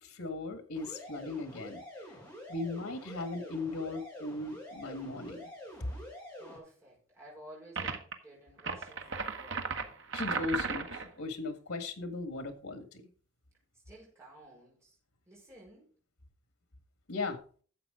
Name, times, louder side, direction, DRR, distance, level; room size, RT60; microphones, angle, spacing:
voice 1, 0.0-1.8 2.5-5.5 10.1-13.0 17.1-17.4, left 3 dB, 85° left, 9 dB, 1.8 m, -38 dB
sound 1, 0.7-6.6, left 1 dB, 10° left, 4.2 m, -47 dB
voice 2, 6.4-10.0 13.8-15.0 15.3-15.9, right 1 dB, 15° right, -5 dB, 5.1 m, -54 dB
sound 2, 7.8-8.1 8.6-11.1, right 4 dB, 60° right, 1.2 m, -35 dB
12.5 x 7.5 x 3.8 m, 0.42 s
head